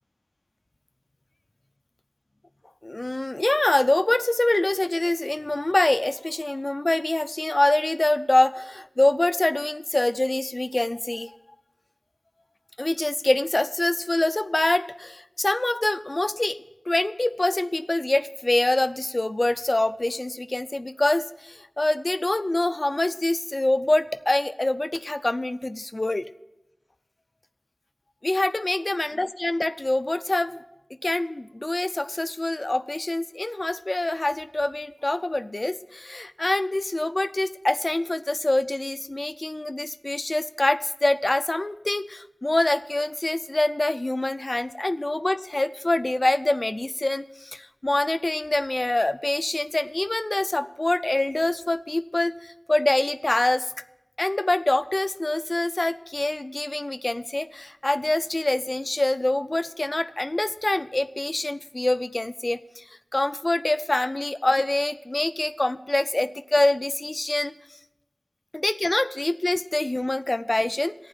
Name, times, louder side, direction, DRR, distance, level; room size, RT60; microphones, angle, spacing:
voice 1, 2.8-11.3 12.8-16.6 16.9-26.3 28.2-30.6 31.0-53.7 54.2-62.8 63.1-67.5 68.5-70.9, left 2 dB, 50° left, 12 dB, 0.4 m, -25 dB
11.5 x 9.0 x 7.0 m, 0.91 s
wide cardioid pair, 45°, 0 cm